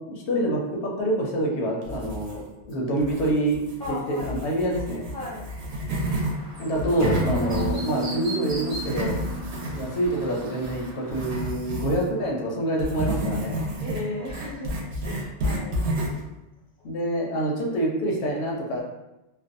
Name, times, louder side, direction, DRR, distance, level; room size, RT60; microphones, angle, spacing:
voice 1, 0.0-3.6 3.9-5.0 6.6-9.1 9.7-13.7 16.8-18.8, right 1 dB, 80° left, -1 dB, 0.9 m, -26 dB
sound 1, 1.8-2.6 3.0-6.3 6.7-12.1 12.8-16.3, right 1 dB, 80° right, 0.9 m, -30 dB
voice 2, 3.8-4.3 5.1-5.5 7.4-7.6 13.8-15.7, left 2 dB, 5° left, -7 dB, 0.6 m, -35 dB
Chirp tweet, 6.0-11.5, right 1 dB, 35° right, 0.3 m, -41 dB
sound 2, 7.0-10.8, equal, 55° left, 0.5 m, -33 dB
2.5 x 2.1 x 2.5 m, 0.95 s
omnidirectional pair, 1.1 m